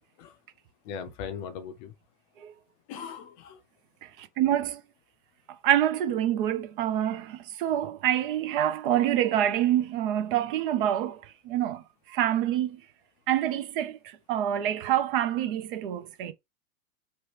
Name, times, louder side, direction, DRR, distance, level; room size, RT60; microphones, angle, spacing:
voice 1, 0.8-1.9 2.9-3.6, left 7 dB, 35° left, 0.6 m, -39 dB
voice 2, 4.0-4.8 5.6-11.8 12.1-12.8 13.3-14.0 14.3-16.3, right 11 dB, 40° right, 0.5 m, -26 dB
3.1 x 2.1 x 3.3 m
hypercardioid pair, 105°, 40 cm